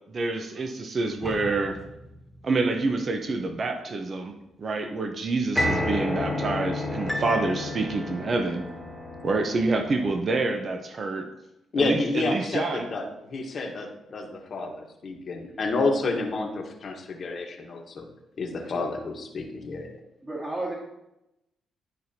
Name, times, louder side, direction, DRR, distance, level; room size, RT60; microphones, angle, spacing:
voice 1, 0.1-1.8 2.4-8.6 9.2-11.3 11.8-12.9, right 3 dB, 50° right, 6 dB, 0.8 m, -27 dB
sound 1, 1.2-2.2 5.5-10.1, left 1 dB, 5° left, 1.5 m, -31 dB
voice 2, 11.7-18.1 18.4-19.9, left 3 dB, 55° left, 2 dB, 1.3 m, -29 dB
voice 3, 20.2-20.7, right 2 dB, 25° right, -5 dB, 1.9 m, -33 dB
12.0 x 4.4 x 2.8 m, 0.88 s
supercardioid pair, 55°, 0 cm